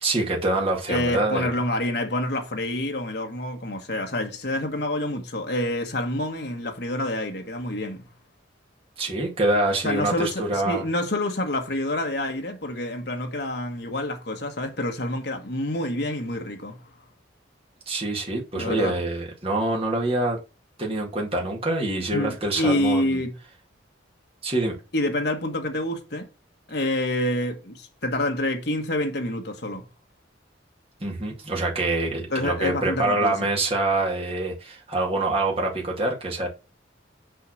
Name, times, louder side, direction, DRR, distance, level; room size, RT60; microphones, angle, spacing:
voice 1, 0.0-1.5 9.0-10.8 17.9-20.4 20.8-23.2 24.4-24.8 31.0-36.5, right 2 dB, 30° right, 2.2 m, -25 dB
voice 2, 0.9-8.0 9.8-16.8 18.5-19.0 22.1-23.3 24.9-26.3 26.7-29.8 32.3-33.3, left 1 dB, 55° left, 1.5 m, -27 dB
6.6 x 4.1 x 6.3 m
head